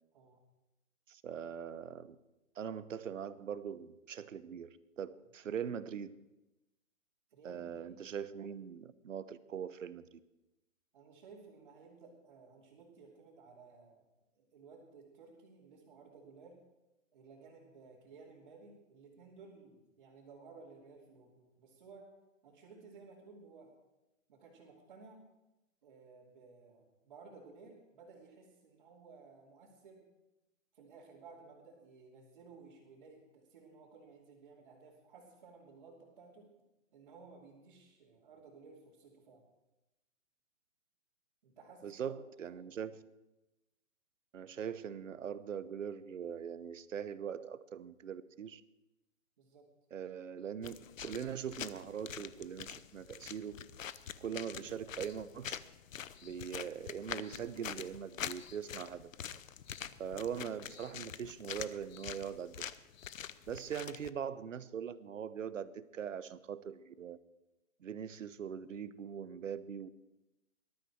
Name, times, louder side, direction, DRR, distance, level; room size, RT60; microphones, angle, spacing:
voice 1, 1.1-2.2 2.6-6.2 7.4-10.2 41.8-43.0 44.3-48.6 49.9-53.6 54.2-55.6 56.2-59.1 60.0-62.6 63.5-67.2 67.8-69.9, right 8 dB, 70° right, 15 dB, 1.0 m, -42 dB
voice 2, 7.3-8.0 10.9-14.0 14.4-16.6 17.1-22.1 22.4-23.7 24.3-25.2 25.8-30.0 30.7-36.5 36.9-39.4 41.4-42.1 42.5-42.6 49.4-49.7 59.9-60.1, right 4 dB, 35° right, -7 dB, 2.8 m, -57 dB
sound 1, 50.6-64.1, left 9 dB, 75° left, 0.8 m, -45 dB
20.0 x 12.5 x 4.6 m, 0.98 s
hypercardioid pair, 175°, 40 cm